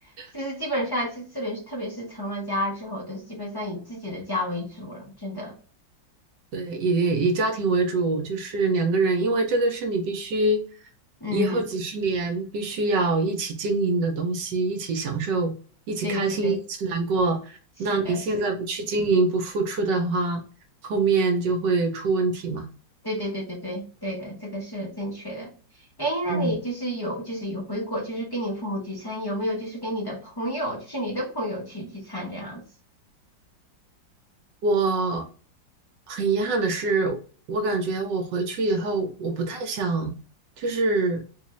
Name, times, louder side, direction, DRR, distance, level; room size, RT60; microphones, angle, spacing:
voice 1, 0.3-5.5 11.2-11.6 16.0-16.6 17.9-18.4 23.0-25.5 26.0-32.6, equal, 35° left, -3 dB, 0.3 m, -31 dB
voice 2, 6.5-10.6 11.3-15.5 15.9-20.4 20.8-22.7 26.3-26.6 34.6-35.3 36.1-37.2 37.5-40.2 40.6-41.2, right 3 dB, 75° right, 4 dB, 1.3 m, -25 dB
3.9 x 2.4 x 3.0 m, 0.39 s
omnidirectional pair, 2.0 m